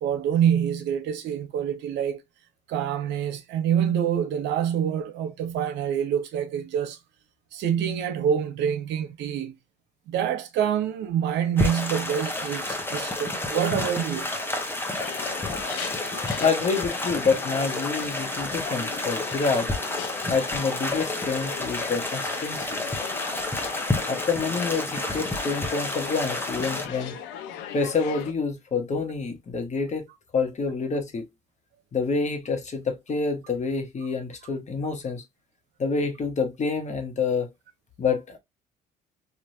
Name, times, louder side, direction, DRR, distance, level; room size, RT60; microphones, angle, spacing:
voice 1, 0.0-2.2 2.7-7.0 7.5-9.5 10.1-14.3 16.0-16.1, right 9 dB, 75° right, 0.7 m, -26 dB
sound 1, 11.6-26.9, left 2 dB, 10° left, 0.9 m, -30 dB
sound 2, 15.0-28.3, left 9 dB, 85° left, 0.6 m, -38 dB
voice 2, 16.3-19.7 20.3-22.8 24.1-27.1 27.7-30.1 30.3-31.3 31.9-35.2 35.8-37.5 38.0-38.4, left 4 dB, 40° left, 1.1 m, -27 dB
3.2 x 2.5 x 2.6 m
supercardioid pair, 70°, 18 cm